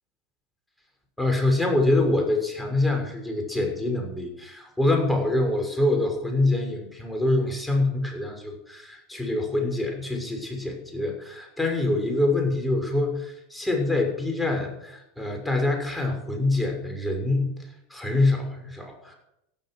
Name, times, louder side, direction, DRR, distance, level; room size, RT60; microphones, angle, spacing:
voice 1, 1.2-19.1, left 2 dB, 5° left, 3 dB, 6.5 m, -25 dB
17.5 x 12.0 x 6.5 m, 0.81 s
hypercardioid pair, 95°, 0 cm